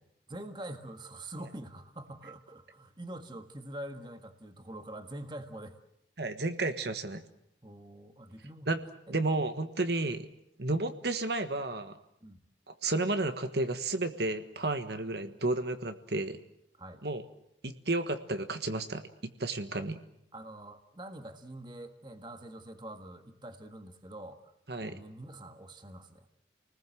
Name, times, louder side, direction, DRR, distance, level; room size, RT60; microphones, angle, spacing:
voice 1, 0.3-5.8 7.6-8.7 12.2-12.4 16.8-17.0 19.7-19.9 20.3-24.5 24.8-26.3, right 1 dB, 25° right, 7 dB, 1.6 m, -45 dB
voice 2, 6.2-7.2 8.7-8.8 9.1-10.3 10.6-12.0 12.7-16.4 17.0-17.2 17.6-19.1 19.4-19.9 24.7-24.9, right 2 dB, 65° right, 8 dB, 1.5 m, -32 dB
30.0 x 20.0 x 7.7 m, 0.76 s
head